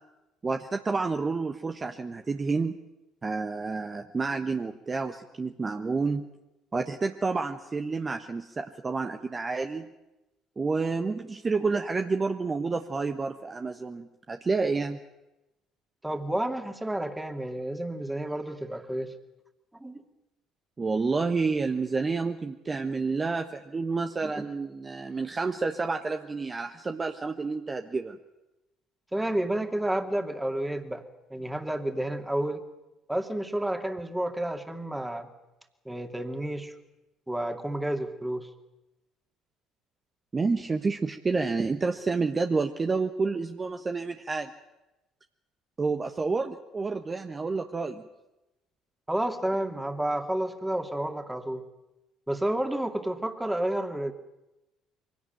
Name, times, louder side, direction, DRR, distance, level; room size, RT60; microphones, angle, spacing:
voice 1, 0.4-2.8 3.2-6.3 6.7-9.9 10.6-15.0 20.8-28.2 40.3-44.5 45.8-48.0, right 4 dB, 30° right, 6 dB, 1.2 m, -29 dB
voice 2, 16.0-19.1 19.8-20.0 24.2-24.5 29.1-31.0 31.3-32.6 33.1-35.3 35.8-36.7 37.3-38.5 49.1-51.6 52.3-54.1, right 1 dB, 10° right, 6 dB, 2.6 m, -30 dB
23.5 x 17.5 x 9.2 m, 0.98 s
hypercardioid pair, 55°, 0 cm